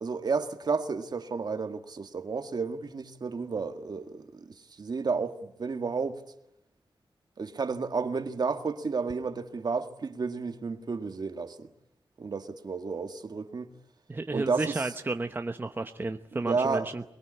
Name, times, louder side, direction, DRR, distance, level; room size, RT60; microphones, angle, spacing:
voice 1, 0.0-6.2 7.4-11.7 12.2-13.7 14.3-14.8 16.3-16.9, right 4 dB, 50° right, 1.8 m, -32 dB
voice 2, 14.1-17.0, right 2 dB, 25° right, 0.9 m, -32 dB
23.5 x 21.5 x 9.9 m
wide cardioid pair, 125°, 9 cm